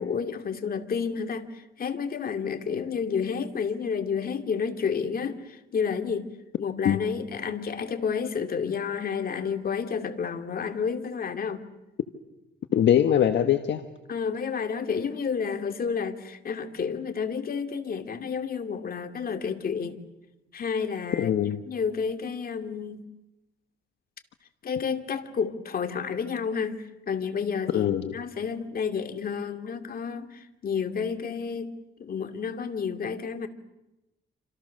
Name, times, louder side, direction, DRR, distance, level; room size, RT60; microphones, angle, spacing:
voice 1, 0.0-6.3 6.6-11.7 14.1-20.0 20.5-21.3 21.7-23.0 24.6-31.7 32.0-33.5, left 6 dB, 50° left, 7 dB, 2.5 m, -30 dB
voice 2, 12.7-13.8 21.2-21.6 27.7-28.1, left 10 dB, 65° left, 7 dB, 1.5 m, -22 dB
28.0 x 26.5 x 6.6 m, 0.98 s
cardioid pair, 90°, 20 cm